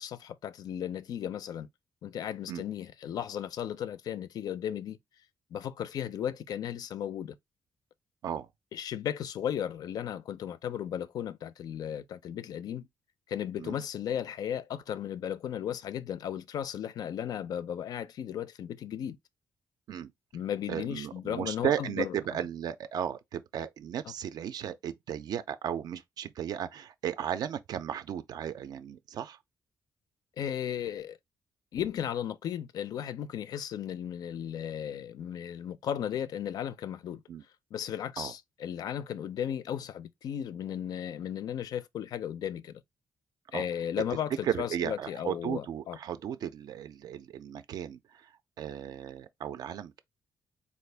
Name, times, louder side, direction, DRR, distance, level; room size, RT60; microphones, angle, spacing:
voice 1, 0.0-1.7 2.0-5.0 5.5-7.4 8.7-12.9 13.3-19.2 20.3-22.4 30.4-31.2 31.7-37.2 37.7-42.8 43.5-46.0, left 9 dB, 60° left, 0.4 m, -35 dB
voice 2, 20.7-29.4 37.3-37.4 38.2-38.3 43.5-43.7 44.4-48.3 48.6-50.0, right 9 dB, 60° right, 0.3 m, -35 dB
4.2 x 2.4 x 3.2 m
wide cardioid pair, 175°, 7 cm